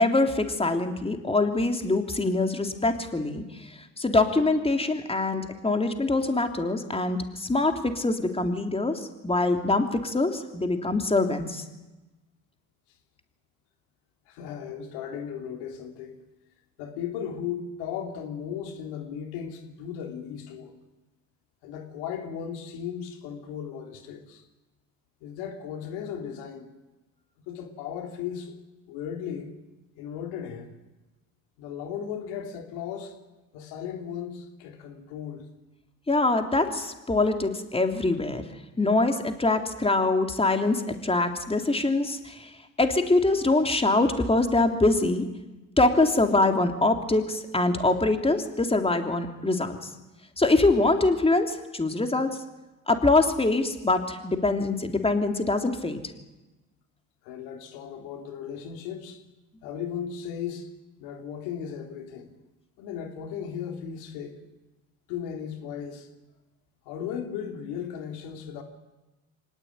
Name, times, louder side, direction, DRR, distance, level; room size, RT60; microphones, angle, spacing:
voice 1, 0.0-3.7 4.0-11.6 36.1-38.4 38.8-42.5 42.8-45.2 45.8-49.8 50.4-52.3 52.9-56.0, left 2 dB, 15° left, 5 dB, 3.3 m, -24 dB
voice 2, 14.3-16.2 16.8-20.7 21.6-24.4 25.2-26.7 27.4-28.5 28.8-29.5 30.0-30.7 31.6-33.2 33.5-35.4 57.2-59.2 59.6-60.7 61.0-62.3 62.8-64.4 65.1-66.1 66.9-68.6, left 8 dB, 85° left, 4 dB, 3.5 m, -36 dB
24.5 x 18.5 x 9.7 m, 1.1 s
supercardioid pair, 75°, 38 cm